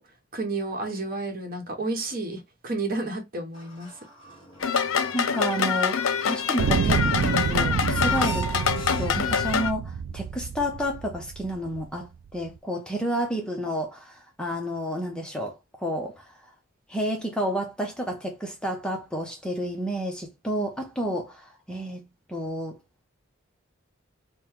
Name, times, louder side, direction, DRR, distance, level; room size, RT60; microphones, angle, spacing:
voice 1, 0.0-4.0, right 2 dB, 45° right, 1.0 m, -31 dB
sound 1, 3.5-9.4, right 1 dB, 20° left, 1.7 m, -42 dB
sound 2, 4.6-9.7, left 7 dB, 75° left, 0.5 m, -25 dB
voice 2, 5.1-8.7 9.0-16.5 16.9-22.0 22.3-22.8, equal, 5° left, 0.7 m, -31 dB
sound 3, 6.6-11.8 12.6-12.7, right 6 dB, 70° right, 0.3 m, -28 dB
3.8 x 2.2 x 4.4 m
head